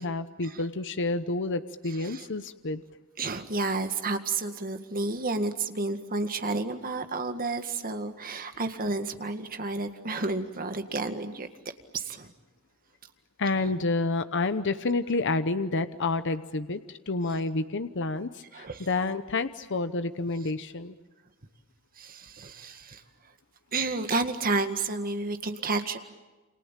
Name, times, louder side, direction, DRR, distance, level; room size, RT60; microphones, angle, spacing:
voice 1, 0.0-2.8 13.4-21.0, left 3 dB, 55° left, 11 dB, 0.9 m, -29 dB
voice 2, 3.2-11.5 11.9-12.3 13.7-13.8 18.5-18.9 22.0-23.0 23.7-26.0, right 3 dB, 40° right, 7 dB, 1.9 m, -31 dB
29.0 x 26.5 x 7.4 m, 1.2 s
head